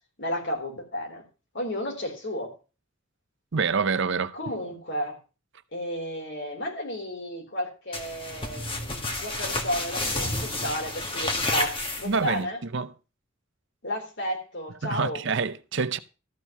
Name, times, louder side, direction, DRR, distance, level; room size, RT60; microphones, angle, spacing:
voice 1, 0.2-1.2 1.5-2.5 4.3-5.2 5.7-12.6 13.8-15.2, equal, 60° left, 3.9 m, -32 dB
voice 2, 3.5-4.3 12.0-12.5 12.7-12.9 14.8-16.0, right 5 dB, 65° right, 0.7 m, -26 dB
sound 1, 7.9-12.4, left 2 dB, 25° left, 1.9 m, -30 dB
13.5 x 4.6 x 7.0 m
head